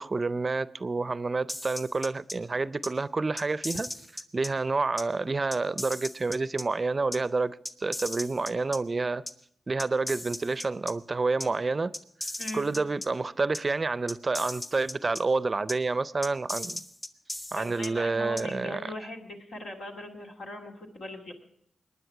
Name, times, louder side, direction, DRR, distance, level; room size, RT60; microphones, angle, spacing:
voice 1, 0.0-3.9 4.3-9.2 9.7-11.9 12.5-16.8 17.5-18.9, right 3 dB, 40° right, 0.5 m, -29 dB
sound 1, 1.5-2.3 2.8-2.9 3.4-4.5 5.0-5.1 5.5-6.6 7.1-7.2 7.6-8.8 9.3-9.4 9.8-10.9 11.4-11.5 11.9-13.1 13.5-13.6 14.1-15.2 15.7-15.8 16.2-17.9 18.4-18.5, left 1 dB, 30° left, 1.2 m, -37 dB
voice 2, 12.4-12.7 17.5-21.3, left 1 dB, 85° left, 2.3 m, -40 dB
20.0 x 9.6 x 4.7 m
supercardioid pair, 45°, 0 cm